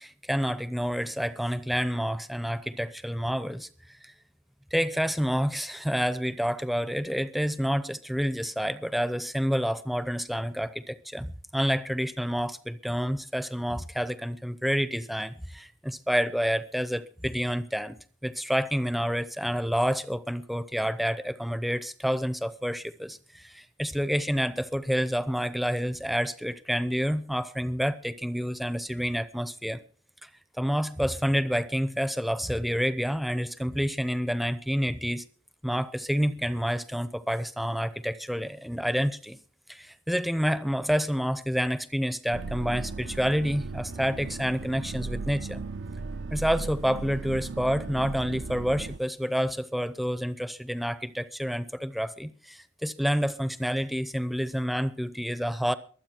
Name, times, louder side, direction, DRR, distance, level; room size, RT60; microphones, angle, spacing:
voice 1, 0.0-3.7 4.0-4.1 4.7-18.0 18.2-29.8 30.2-30.3 30.6-35.2 35.6-39.4 39.7-45.6 46.3-55.7, equal, ahead, 0.6 m, -28 dB
sound 1, 42.3-49.0, right 3 dB, 80° right, 0.6 m, -36 dB
23.0 x 8.4 x 4.4 m
head